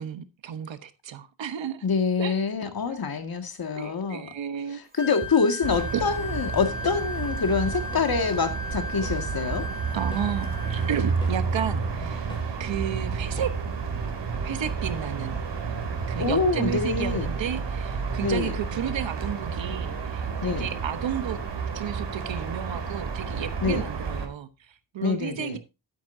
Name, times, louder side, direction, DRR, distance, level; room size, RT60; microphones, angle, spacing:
voice 1, 0.0-1.8 2.2-2.3 2.6-3.0 3.8-4.8 5.9-6.0 9.9-12.2 12.6-13.5 14.4-15.8 16.1-21.4 21.7-25.6, right 9 dB, 85° right, 1.2 m, -32 dB
voice 2, 1.8-4.3 5.0-9.7 16.2-17.3 18.2-18.5 20.4-20.7 23.6-23.8 25.0-25.6, left 5 dB, 55° left, 2.1 m, -26 dB
Wind instrument woodwind instrument, 4.9-11.1, left 2 dB, 20° right, 4.0 m, -36 dB
Drum kit / Drum, 5.2-13.8, equal, 10° left, 6.1 m, -43 dB
sound 1, 5.6-24.3, right 5 dB, 65° right, 3.2 m, -31 dB
12.5 x 9.5 x 2.7 m
cardioid pair, 90°, 44 cm